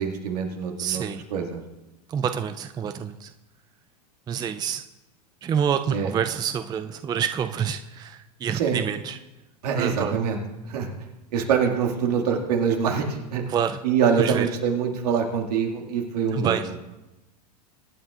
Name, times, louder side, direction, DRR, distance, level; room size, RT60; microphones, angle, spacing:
voice 1, 0.0-1.6 5.9-6.1 8.5-8.9 9.6-10.4 10.7-10.9 11.3-13.4 13.8-16.6, right 6 dB, 70° right, 0 dB, 2.2 m, -24 dB
voice 2, 0.8-1.2 2.1-3.3 4.3-4.8 5.4-9.2 9.8-10.2 13.5-13.8 14.2-14.5 16.3-16.7, right 8 dB, 20° right, 9 dB, 0.4 m, -27 dB
23.5 x 9.5 x 2.5 m, 1.0 s
hypercardioid pair, 100°, 21 cm